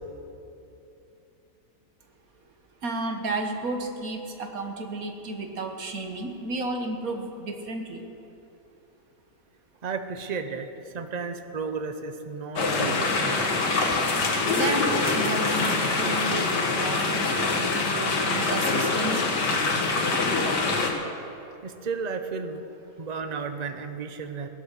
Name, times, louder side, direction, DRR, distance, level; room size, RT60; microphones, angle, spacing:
voice 1, 2.8-8.0 14.4-19.3, right 2 dB, 60° right, 4 dB, 1.7 m, -32 dB
voice 2, 9.8-13.7 21.6-22.7 23.0-24.5, right 5 dB, 35° right, 7 dB, 0.7 m, -33 dB
sound 1, 12.6-20.9, left 3 dB, 85° left, 2.1 m, -24 dB
17.0 x 12.0 x 6.6 m, 2.9 s
omnidirectional pair, 1.8 m